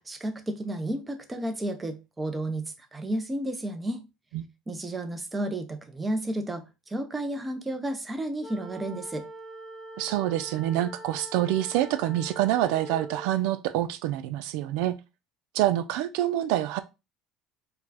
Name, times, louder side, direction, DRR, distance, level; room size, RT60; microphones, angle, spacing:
voice 1, 0.0-4.0 4.7-9.3, right 1 dB, 15° right, 0.8 m, -32 dB
sound 1, 8.4-13.3, right 1 dB, 20° left, 0.9 m, -43 dB
voice 2, 10.0-15.0 15.5-16.8, right 13 dB, 80° right, 0.4 m, -26 dB
4.5 x 2.4 x 4.1 m
cardioid pair, 120°, 0 cm